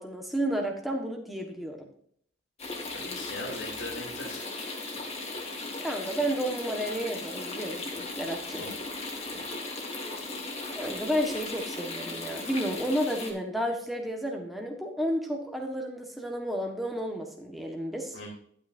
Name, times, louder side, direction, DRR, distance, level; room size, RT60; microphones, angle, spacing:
voice 1, 0.0-1.8 5.8-8.6 10.0-10.3 10.7-18.2, equal, ahead, 1 dB, 1.3 m, -32 dB
sound 1, 2.6-13.3, left 2 dB, 30° left, 1.9 m, -37 dB
voice 2, 2.9-4.5 8.6-8.7 9.3-9.4 18.1-18.3, left 2 dB, 70° left, -2 dB, 2.8 m, -39 dB
11.5 x 8.9 x 2.6 m, 0.63 s
head